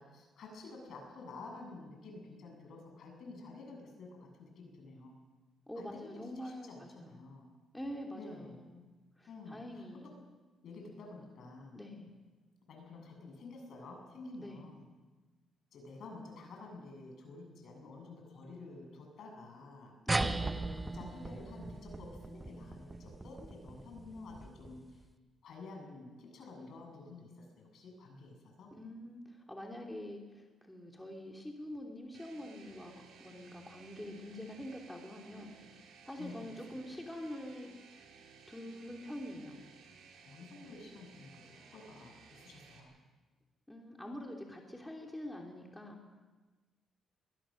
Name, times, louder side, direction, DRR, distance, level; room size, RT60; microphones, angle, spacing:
voice 1, 0.0-5.1 5.8-7.5 8.1-8.6 9.3-10.1 10.6-11.9 12.7-14.8 15.7-19.9 20.5-24.8 25.4-28.7 36.2-36.6 40.2-42.9, left 3 dB, 65° left, 1 dB, 7.7 m, -50 dB
voice 2, 5.7-7.2 7.7-8.9 9.2-10.1 11.7-12.1 14.4-14.7 20.0-20.5 28.7-32.9 33.2-35.5 36.0-37.7 38.5-39.6 43.7-46.0, left 1 dB, 5° left, 0 dB, 3.1 m, -45 dB
sound 1, 20.1-25.0, right 2 dB, 15° right, 1.0 m, -38 dB
sound 2, 32.1-42.8, right 5 dB, 80° right, 4.6 m, -58 dB
22.0 x 21.0 x 6.6 m, 1.3 s
cardioid pair, 90°, 0 cm